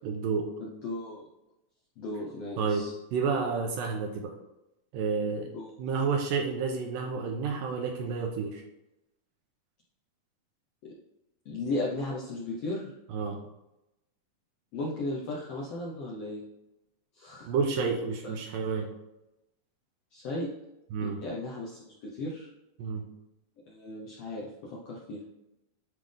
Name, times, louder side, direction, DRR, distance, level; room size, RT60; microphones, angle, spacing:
voice 1, 0.0-0.5 2.6-2.8 3.1-4.3 4.9-5.5 5.8-8.6 13.1-13.4 17.5-18.9 20.9-21.2 22.8-23.1, right 5 dB, 85° right, 1 dB, 2.4 m, -30 dB
voice 2, 0.6-1.2 2.0-2.9 5.5-5.8 10.8-11.0 11.4-12.9 14.7-16.4 17.1-17.5 18.2-18.3 20.1-20.5 21.0-22.5 23.7-25.2, left 2 dB, 70° left, -4 dB, 1.5 m, -36 dB
9.7 x 3.8 x 3.5 m, 0.92 s
omnidirectional pair, 4.0 m